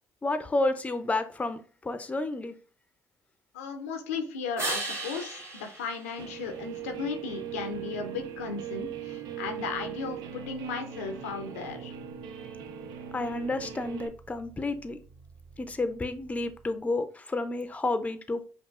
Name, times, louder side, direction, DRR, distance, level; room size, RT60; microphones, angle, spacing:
voice 1, 0.2-2.5 13.1-15.0 15.6-18.4, left 2 dB, 20° left, 9 dB, 0.5 m, -30 dB
voice 2, 3.5-11.9, left 5 dB, 90° left, 6 dB, 0.5 m, -36 dB
sound 1, 4.6-7.1 12.9-16.9, right 2 dB, 40° right, 1.2 m, -40 dB
Guitar, 6.2-14.1, right 9 dB, 70° right, 0.5 m, -40 dB
5.2 x 2.4 x 2.4 m, 0.41 s
hypercardioid pair, 55°, 7 cm